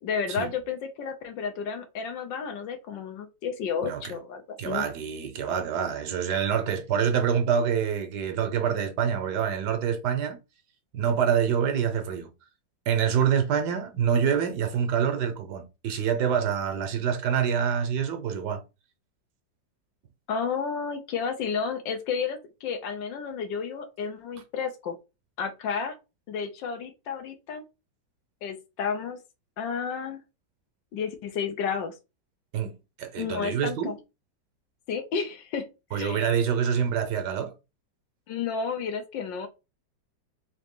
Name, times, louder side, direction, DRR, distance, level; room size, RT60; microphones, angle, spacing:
voice 1, 0.0-4.8 20.3-25.0 25.4-26.0 26.3-27.6 28.4-29.2 29.6-30.2 30.9-31.9 33.2-34.0 34.9-36.2 38.3-39.5, left 6 dB, 75° left, 1.5 m, -31 dB
voice 2, 3.8-4.1 4.6-10.4 10.9-12.3 12.9-18.6 32.5-34.0 35.9-37.5, right 7 dB, 70° right, 1.3 m, -26 dB
3.8 x 2.9 x 3.5 m
omnidirectional pair, 2.0 m